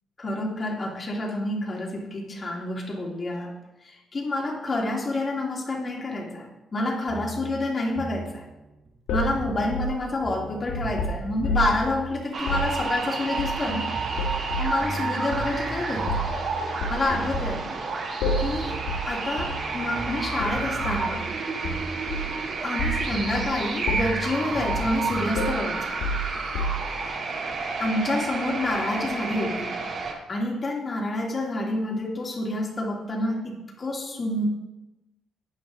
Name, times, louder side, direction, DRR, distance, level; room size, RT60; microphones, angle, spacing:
voice 1, 0.2-3.5 3.8-8.5 9.1-13.9 14.6-16.3 16.9-17.7 18.4-18.8 19.1-21.3 22.6-25.9 27.8-29.8 30.1-34.4, left 2 dB, 35° left, -1 dB, 2.8 m, -28 dB
sound 1, 7.1-13.4 13.7-18.0 18.2-22.5 22.8-25.4, right 4 dB, 30° right, 1.2 m, -38 dB
sound 2, 9.1-11.8 12.4-12.7 13.4-13.8 14.2-14.8 15.3-15.5 16.1-16.4 16.8-17.6 18.2-18.6 18.9-19.1 19.4-19.6 20.4-21.0 21.6-22.4 22.8-23.0 23.3-23.5 23.9-24.3 24.7-25.0 25.4-27.0, equal, 90° left, 1.7 m, -29 dB
sound 3, 12.3-30.1, right 4 dB, 55° right, 2.7 m, -30 dB
12.0 x 8.7 x 3.8 m, 0.98 s
cardioid pair, 90°, 0 cm